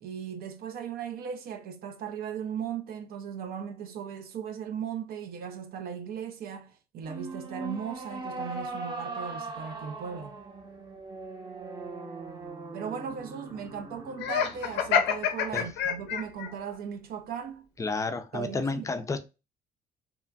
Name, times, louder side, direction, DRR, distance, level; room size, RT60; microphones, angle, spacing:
voice 1, 0.0-10.4 12.7-17.7 18.3-18.9, right 7 dB, 65° right, 0.5 m, -37 dB
sound 1, 7.0-16.4, right 3 dB, 25° right, 0.8 m, -41 dB
Laughter, 14.2-16.5, left 7 dB, 85° left, 0.4 m, -27 dB
voice 2, 17.8-19.2, left 3 dB, 20° left, 0.3 m, -31 dB
2.9 x 2.4 x 2.2 m
cardioid pair, 110°, 17 cm